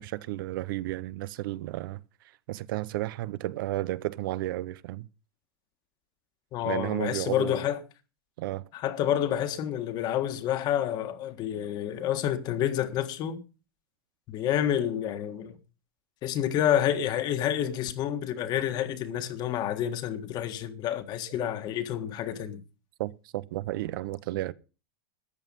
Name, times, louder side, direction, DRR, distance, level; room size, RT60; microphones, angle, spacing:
voice 1, 0.0-2.0 2.5-5.1 6.6-7.6 8.4-8.6 23.0-24.5, right 16 dB, 65° right, 0.7 m, -32 dB
voice 2, 6.5-7.8 8.7-13.4 14.3-15.5 16.2-22.6, left 10 dB, 35° left, 1.7 m, -29 dB
14.0 x 9.5 x 5.5 m
supercardioid pair, 155°, 12 cm